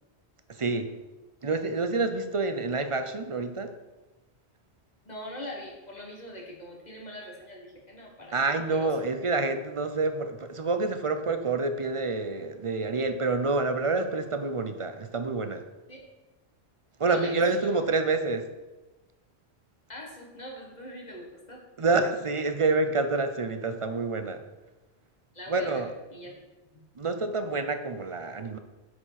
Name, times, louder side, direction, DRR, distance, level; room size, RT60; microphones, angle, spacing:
voice 1, 0.5-0.9 1.4-3.7 8.3-15.6 17.0-18.5 21.8-24.4 25.5-25.9 27.0-28.6, right 3 dB, 35° right, 8 dB, 0.6 m, -28 dB
voice 2, 5.0-9.0 15.9-16.0 17.1-17.8 19.9-21.6 25.3-25.8 26.1-26.3 26.7-26.8, left 1 dB, 40° left, -1 dB, 1.7 m, -42 dB
8.0 x 5.0 x 5.8 m, 1.1 s
omnidirectional pair, 1.1 m